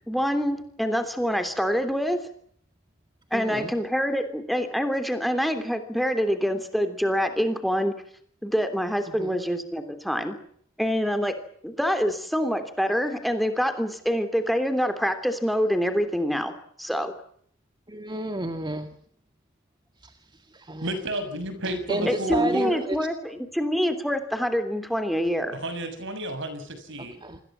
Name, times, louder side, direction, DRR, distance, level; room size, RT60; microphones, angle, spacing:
voice 1, 0.1-2.2 3.3-7.9 8.4-10.4 10.8-11.3 11.6-17.1 22.0-23.1 23.5-25.6, equal, ahead, 8 dB, 3.2 m, -26 dB
voice 2, 3.3-3.7 9.1-9.4 17.9-18.9 20.0-21.0 21.6-23.0 27.0-27.4, right 1 dB, 20° right, 7 dB, 2.0 m, -32 dB
voice 3, 20.8-22.8 25.5-27.2, right 1 dB, 60° right, 10 dB, 6.6 m, -32 dB
29.0 x 21.5 x 7.4 m, 0.62 s
head